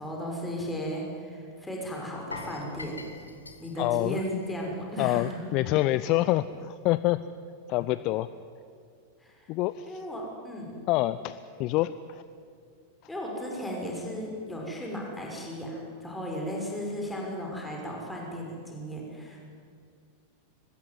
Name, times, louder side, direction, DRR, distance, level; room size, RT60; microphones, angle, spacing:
voice 1, 0.0-2.9 3.6-5.4 9.2-9.5 9.9-10.8 13.1-19.4, equal, 5° left, -2 dB, 6.1 m, -35 dB
sound 1, 2.3-5.3 5.6-5.8 6.2-6.3, left 3 dB, 80° left, 2.4 m, -44 dB
voice 2, 3.8-4.2 5.0-7.2 7.7-8.3 9.5-10.0 10.9-12.2, left 16 dB, 40° left, 14 dB, 0.6 m, -27 dB
24.5 x 19.5 x 9.7 m, 2.3 s
figure-of-eight pair, 90°, 0 cm